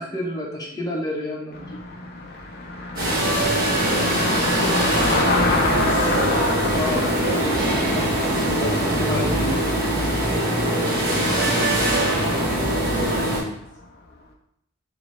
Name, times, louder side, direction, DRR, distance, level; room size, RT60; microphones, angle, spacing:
voice 1, 0.0-1.8 6.7-7.1 7.4-7.7 7.9-9.6, left 1 dB, 20° left, -2 dB, 0.8 m, -30 dB
Car passing by, 1.5-13.8, left 2 dB, 50° left, 0.5 m, -28 dB
sound 1, 3.0-13.4, right 1 dB, 45° right, 1.1 m, -22 dB
voice 2, 3.3-7.4 10.6-11.2 11.5-13.5, right 1 dB, 60° right, -10 dB, 1.5 m, -36 dB
4.0 x 3.3 x 3.1 m, 0.75 s
head